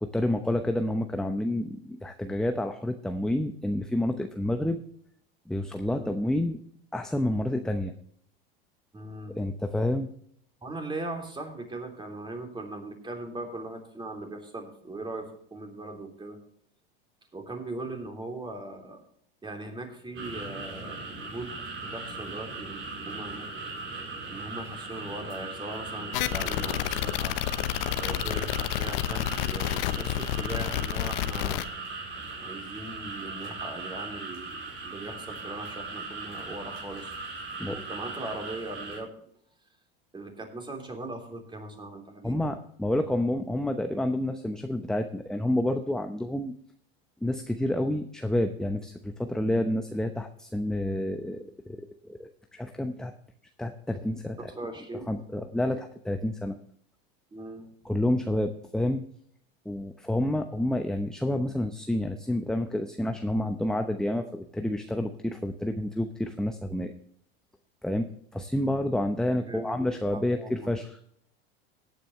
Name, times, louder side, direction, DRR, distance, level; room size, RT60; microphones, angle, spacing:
voice 1, 0.0-4.8 5.5-6.6 6.9-7.9 9.4-10.1 37.6-37.9 42.2-46.5 47.2-53.1 53.6-54.5 55.1-56.6 57.8-59.0 59.7-66.9 67.8-68.1 68.3-71.0, left 1 dB, ahead, 6 dB, 0.8 m, -29 dB
voice 2, 8.9-9.4 10.6-16.4 17.3-19.0 19.4-23.5 24.3-27.4 27.9-31.6 32.3-37.1 37.6-39.1 40.1-42.5 54.4-55.1 57.3-57.7 69.4-70.7, right 2 dB, 15° right, 3 dB, 3.4 m, -39 dB
sound 1, 20.1-39.0, right 3 dB, 45° right, 5.0 m, -39 dB
sound 2, 26.1-31.6, left 13 dB, 70° left, 0.9 m, -29 dB
17.5 x 9.2 x 3.2 m, 0.66 s
hypercardioid pair, 105°, 30 cm